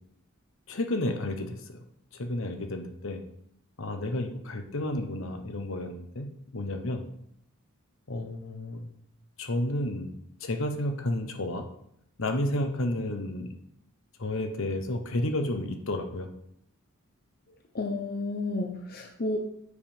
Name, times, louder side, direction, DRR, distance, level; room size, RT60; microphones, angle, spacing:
voice 1, 0.7-1.8 2.1-3.2 3.8-6.3 6.5-7.1 8.1-8.8 9.4-10.1 10.4-11.6 12.2-13.5 14.2-16.3, left 1 dB, 65° left, 6 dB, 1.1 m, -31 dB
voice 2, 17.7-19.4, left 2 dB, 45° left, 3 dB, 0.8 m, -31 dB
8.3 x 5.2 x 5.2 m, 0.71 s
head